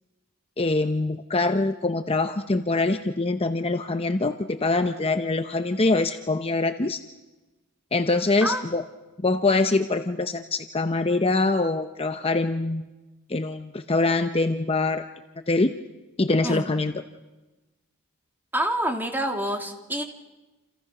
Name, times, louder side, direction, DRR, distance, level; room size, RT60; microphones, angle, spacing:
voice 1, 0.6-7.0 7.9-8.8 9.2-12.9 13.3-15.0 15.5-15.7 16.2-16.9, left 3 dB, 25° left, 8 dB, 0.8 m, -24 dB
voice 2, 18.5-20.0, right 1 dB, 10° right, 4 dB, 2.5 m, -27 dB
29.0 x 28.0 x 6.0 m, 1.1 s
head